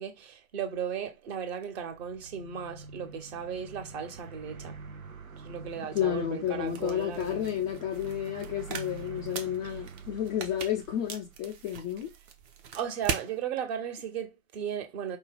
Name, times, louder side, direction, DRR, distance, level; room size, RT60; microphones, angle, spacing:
voice 1, 0.0-4.8 5.4-7.6 9.6-9.8 12.7-15.2, right 8 dB, 45° right, 1.5 m, -36 dB
sound 1, 1.8-12.0, right 4 dB, 80° right, 0.8 m, -45 dB
voice 2, 5.9-12.1, left 10 dB, 15° left, 0.3 m, -31 dB
sound 2, 6.7-13.3, right 7 dB, 30° right, 0.8 m, -40 dB
5.1 x 2.3 x 3.8 m
figure-of-eight pair, 95°, 41 cm